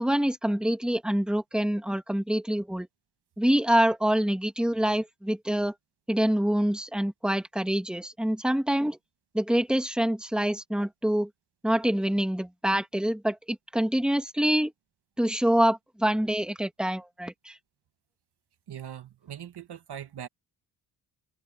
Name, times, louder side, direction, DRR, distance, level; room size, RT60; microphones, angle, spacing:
voice 1, 0.0-2.9 3.4-5.7 6.1-9.0 9.3-11.3 11.6-14.7 15.2-17.6, right 1 dB, ahead, 1.9 m, -26 dB
voice 2, 18.7-20.3, right 9 dB, 70° right, 1.7 m, -41 dB
wide cardioid pair, 125°, 42 cm